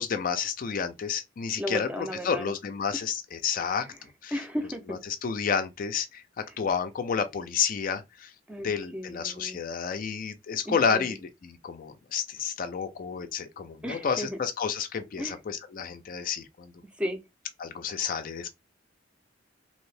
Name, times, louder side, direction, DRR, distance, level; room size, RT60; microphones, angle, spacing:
voice 1, 0.0-3.9 4.2-4.3 4.9-8.3 8.6-16.7 17.6-18.5, left 6 dB, 45° left, 0.4 m, -30 dB
voice 2, 1.6-2.5 3.8-4.0 4.3-5.0 8.5-9.6 10.7-11.2 13.8-14.4 15.2-15.4 17.0-17.2, equal, 5° right, 0.5 m, -35 dB
2.8 x 2.6 x 3.2 m
head